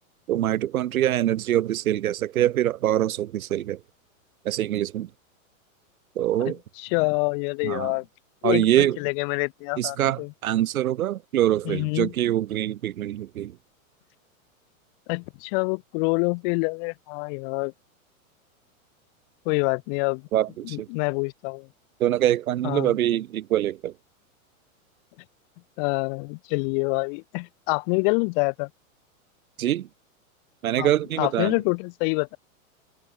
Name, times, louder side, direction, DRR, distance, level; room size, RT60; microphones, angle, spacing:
voice 1, 0.3-3.8 4.5-5.1 6.2-6.6 7.6-7.9 8.4-9.0 9.8-13.6 20.3-20.9 22.0-23.9 29.6-29.9 30.6-31.6, right 12 dB, 75° right, 2.1 m, -24 dB
voice 2, 6.4-8.1 8.4-10.3 11.6-12.1 15.1-17.7 19.4-20.3 20.6-21.7 22.6-23.0 25.8-28.7 30.8-30.9 31.2-32.4, left 39 dB, 40° left, 0.9 m, -26 dB
hypercardioid pair, 130°, 42 cm